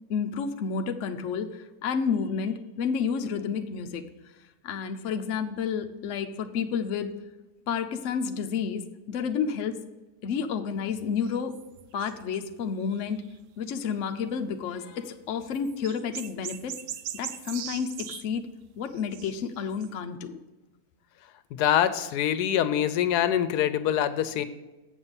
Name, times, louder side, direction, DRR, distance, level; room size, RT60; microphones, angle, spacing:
voice 1, 0.1-4.0 4.6-7.1 7.7-9.8 10.2-11.6 11.9-13.2 13.6-16.7 17.1-18.5 18.8-20.3, left 6 dB, 60° left, 6 dB, 0.9 m, -30 dB
sound 1, 10.8-13.3 13.6-13.7 13.9-14.0 14.2-14.3 15.4-20.0, right 10 dB, 70° right, 0.8 m, -41 dB
voice 2, 21.6-24.4, left 10 dB, 90° left, 13 dB, 1.1 m, -24 dB
8.0 x 5.5 x 7.0 m, 1.1 s
omnidirectional pair, 1.7 m